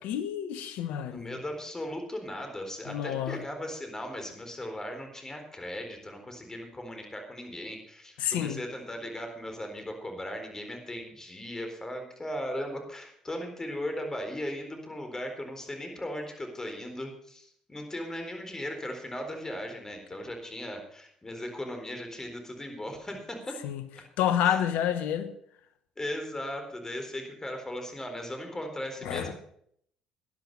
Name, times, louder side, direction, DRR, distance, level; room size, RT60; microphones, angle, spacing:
voice 1, 0.0-1.4 2.9-3.4 8.2-8.6 23.6-23.8 24.2-25.3 29.0-29.3, left 10 dB, 70° left, 1.2 m, -29 dB
voice 2, 1.1-23.6 24.4-24.6 26.0-29.3, left 1 dB, 20° left, 4.1 m, -37 dB
13.0 x 10.5 x 5.5 m
hypercardioid pair, 60°, 3 cm